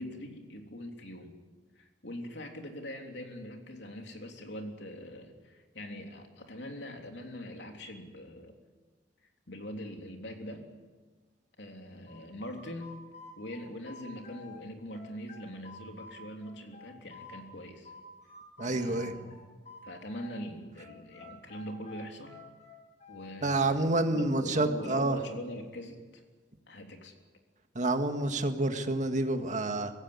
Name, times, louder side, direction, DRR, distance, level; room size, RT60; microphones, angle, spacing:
voice 1, 0.0-1.3 1.7-8.5 9.5-10.6 11.6-13.0 13.4-17.9 18.6-19.4 19.8-22.4 23.1-26.2 26.7-27.1, left 1 dB, 75° left, 3 dB, 3.4 m, -42 dB
sound 1, 12.1-14.6 14.9-17.5 17.9-20.4 20.8-23.4, left 4 dB, 40° left, 5.9 m, -50 dB
voice 2, 18.6-19.1 23.4-25.2 27.8-29.9, right 2 dB, 45° right, 6 dB, 1.9 m, -28 dB
25.0 x 16.0 x 9.8 m, 1.4 s
head